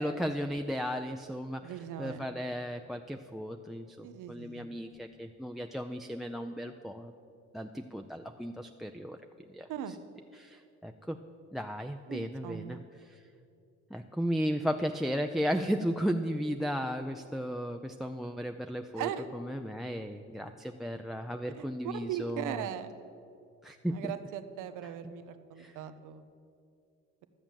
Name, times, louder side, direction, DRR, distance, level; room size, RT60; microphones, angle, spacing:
voice 1, 0.0-7.1 7.5-9.2 9.5-9.7 10.3-11.2 11.5-12.8 13.0-13.2 13.9-22.6 23.6-24.1 25.0-25.1 25.6-25.7, equal, ahead, 6 dB, 0.5 m, -35 dB
voice 2, 1.6-2.3 4.0-4.7 9.7-9.9 12.1-12.8 19.0-19.3 21.5-22.9 23.9-26.2, right 10 dB, 90° right, 10 dB, 0.8 m, -39 dB
13.5 x 7.2 x 7.3 m, 2.5 s
cardioid pair, 90°, 30 cm